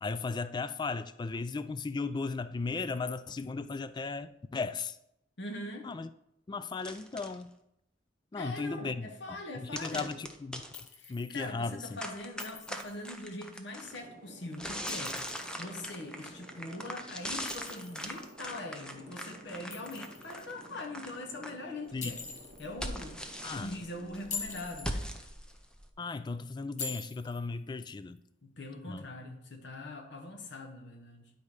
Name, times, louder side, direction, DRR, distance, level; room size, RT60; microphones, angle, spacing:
voice 1, 0.0-5.0 5.8-6.1 6.5-7.5 8.3-10.6 11.1-12.0 21.9-22.1 23.4-23.7 26.0-28.2 28.9-29.0, left 4 dB, 25° left, 0.3 m, -36 dB
voice 2, 5.4-5.9 8.3-10.1 11.0-15.3 15.6-22.3 22.6-23.2 23.5-25.1 28.4-31.3, left 2 dB, 65° left, 1.1 m, -42 dB
sound 1, 6.8-7.4 9.8-10.8 12.0-14.0 14.5-21.5 21.9-25.9, equal, 5° left, 0.7 m, -41 dB
Chink clink, 10.7-11.4 12.4-13.0 14.7-15.6 17.5-18.3 19.7-20.4 22.0-22.7 24.1-24.9 26.8-27.4, left 5 dB, 40° left, 1.1 m, -43 dB
sound 2, 13.8-24.7, right 2 dB, 50° right, 1.1 m, -54 dB
10.5 x 4.2 x 4.9 m
head